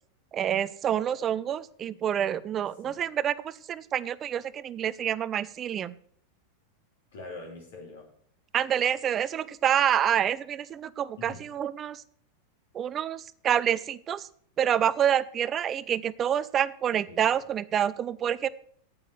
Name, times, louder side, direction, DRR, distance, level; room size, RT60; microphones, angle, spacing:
voice 1, 0.3-5.9 8.5-12.0 12.7-14.3 14.6-18.5, right 9 dB, 25° right, 18 dB, 0.5 m, -27 dB
voice 2, 7.1-8.1 11.2-11.5 17.1-17.5, left 2 dB, 60° left, 0 dB, 3.0 m, -44 dB
9.1 x 8.6 x 6.4 m, 0.63 s
figure-of-eight pair, 90°, 0 cm